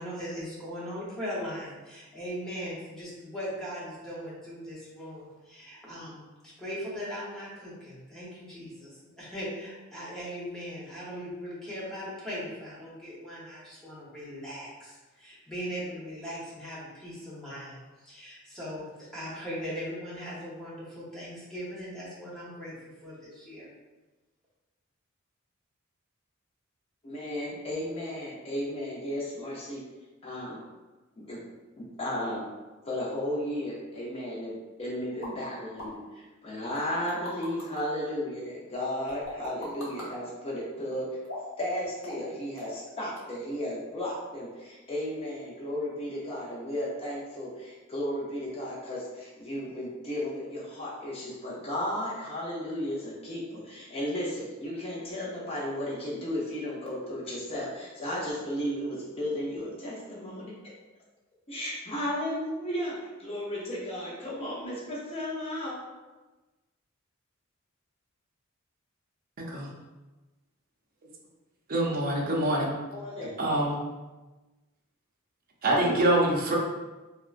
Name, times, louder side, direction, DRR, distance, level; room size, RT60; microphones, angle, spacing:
voice 1, 0.0-22.7 23.0-23.7, equal, ahead, -9 dB, 0.8 m, -39 dB
voice 2, 27.0-29.8 30.2-30.6 31.2-31.4 31.8-32.5 32.8-41.2 41.6-60.7 61.5-65.8 72.9-73.3, left 1 dB, 30° left, -6 dB, 0.6 m, -34 dB
sound 1, 35.2-35.3 35.8-35.9 36.8-37.8 39.1-40.1 41.2-41.6 42.0-42.3 42.6-42.9 43.2-43.3, equal, 90° left, 0.9 m, -39 dB
voice 3, 69.4-69.7 71.7-72.7 73.4-73.8 75.6-76.6, right 1 dB, 45° right, -2 dB, 0.5 m, -25 dB
3.5 x 2.1 x 2.4 m, 1.2 s
head